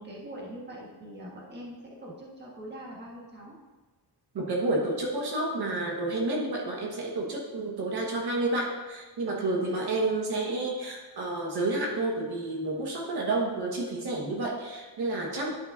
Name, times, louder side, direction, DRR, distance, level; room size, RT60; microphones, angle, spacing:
voice 1, 0.0-3.6 9.6-9.8, equal, 25° right, -4 dB, 1.5 m, -43 dB
voice 2, 4.3-15.5, right 2 dB, 75° right, -2 dB, 1.5 m, -30 dB
11.0 x 5.5 x 2.6 m, 1.3 s
wide cardioid pair, 170°, 40 cm